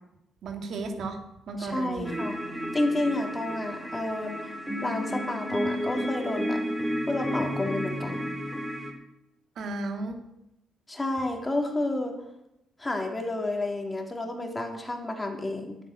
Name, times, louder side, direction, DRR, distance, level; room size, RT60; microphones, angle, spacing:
voice 1, 0.4-2.2 9.6-10.2, right 3 dB, 65° right, 4 dB, 2.5 m, -34 dB
voice 2, 1.6-2.4 2.7-4.5 4.8-6.6 7.1-8.3 10.9-12.1 12.8-15.8, left 2 dB, 20° left, 2 dB, 3.2 m, -30 dB
sound 1, 2.0-8.9, equal, 5° right, 3.3 m, -32 dB
11.5 x 8.9 x 8.7 m, 0.86 s
cardioid pair, 90°, 0 cm